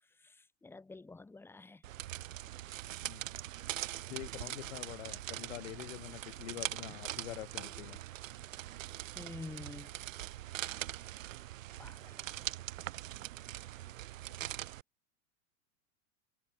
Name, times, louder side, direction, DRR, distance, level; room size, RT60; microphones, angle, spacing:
voice 1, 0.0-1.8 9.2-10.0 11.8-12.5, left 3 dB, 5° left, 7.3 m, -49 dB
sound 1, 1.8-14.8, right 14 dB, 70° right, 3.6 m, -42 dB
voice 2, 4.1-8.0, left 16 dB, 60° left, 6.5 m, -45 dB
supercardioid pair, 175°, 40 cm